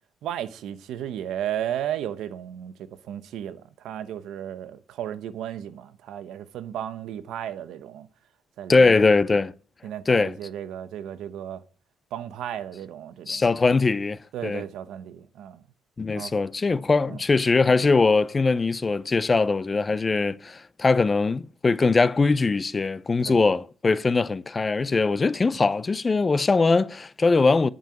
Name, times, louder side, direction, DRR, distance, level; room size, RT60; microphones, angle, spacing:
voice 1, 0.2-8.1 8.6-9.0 9.8-11.6 12.1-13.4 14.3-15.6 16.1-16.3 17.1-17.2 23.2-23.4, right 10 dB, 80° right, 1.0 m, -34 dB
voice 2, 8.7-9.5 10.1-10.4 13.3-14.6 16.0-27.7, left 3 dB, 30° left, 0.6 m, -21 dB
10.5 x 5.5 x 8.5 m
cardioid pair, 90°, 0 cm